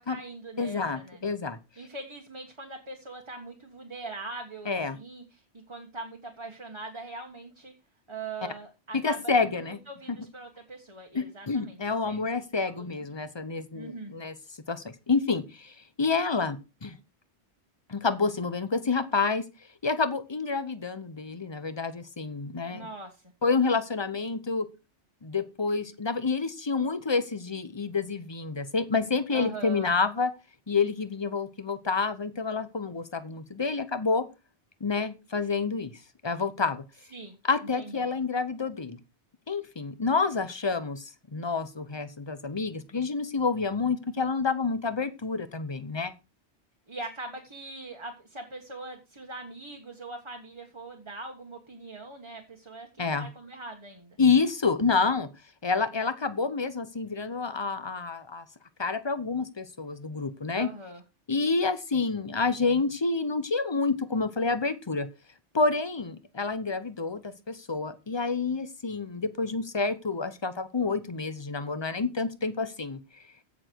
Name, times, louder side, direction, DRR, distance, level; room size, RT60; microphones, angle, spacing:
voice 1, 0.0-1.2 1.8-7.7 8.1-11.8 12.1-12.2 12.6-12.8 13.7-14.2 22.7-23.3 29.3-29.9 37.1-37.4 37.7-38.1 46.9-54.2 60.5-61.0, right 2 dB, 25° right, 3 dB, 1.6 m, -42 dB
voice 2, 0.6-1.6 4.7-5.0 9.0-9.8 10.1-10.2 11.1-14.3 14.7-17.0 17.9-19.4 19.8-22.9 23.4-24.6 25.2-30.3 30.7-34.2 34.8-35.9 36.2-36.8 37.4-39.0 39.5-46.1 53.0-53.3 54.2-55.3 55.6-58.4 58.8-60.7 61.3-65.1 65.5-73.0, left 4 dB, 25° left, 13 dB, 0.9 m, -28 dB
16.0 x 6.9 x 4.6 m, 0.30 s
omnidirectional pair, 1.2 m